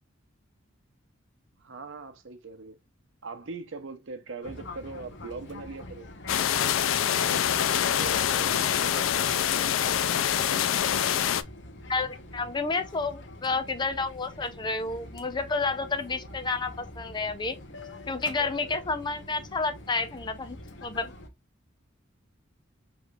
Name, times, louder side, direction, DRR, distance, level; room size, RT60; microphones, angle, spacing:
voice 1, 1.6-2.8 3.2-6.1 6.6-6.8 7.2-9.3 9.5-9.7, right 3 dB, 70° right, 0.7 m, -41 dB
Fixed-wing aircraft airplane, 4.4-21.3, left 1 dB, 65° left, 0.9 m, -45 dB
sound 1, 6.3-11.4, left 10 dB, 80° left, 0.4 m, -25 dB
voice 2, 11.9-17.6 18.1-20.6 20.8-21.1, left 3 dB, 25° left, 0.5 m, -30 dB
4.9 x 3.1 x 2.4 m
head